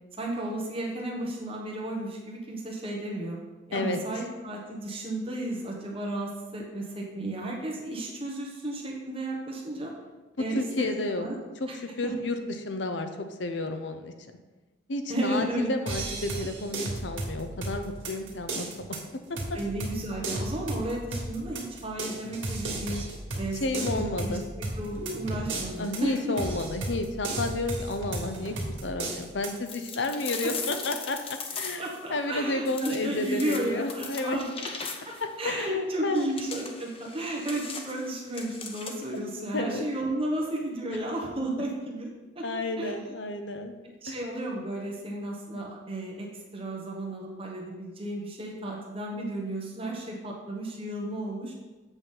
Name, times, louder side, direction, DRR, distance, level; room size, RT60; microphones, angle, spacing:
voice 1, 0.2-3.4 3.7-9.9 10.4-11.4 11.7-11.8 12.0-12.1 15.1-15.7 19.5-23.0 23.4-26.4 30.4-30.5 31.8-42.5 42.8-43.1 44.0-51.5, right 1 dB, 30° right, -2 dB, 1.4 m, -33 dB
voice 2, 10.5-11.3 11.6-11.7 12.0-13.1 13.4-14.1 14.9-19.0 23.5-24.4 25.8-34.4 35.2-36.3 39.5-39.8 42.4-43.8 44.1-44.2, left 2 dB, 70° left, 7 dB, 0.7 m, -31 dB
sound 1, 15.9-29.6, right 2 dB, 85° right, 2.0 m, -35 dB
sound 2, 29.7-32.0 32.7-35.3 36.2-39.2, left 5 dB, 30° left, 0.6 m, -39 dB
8.0 x 6.0 x 3.9 m, 1.2 s
head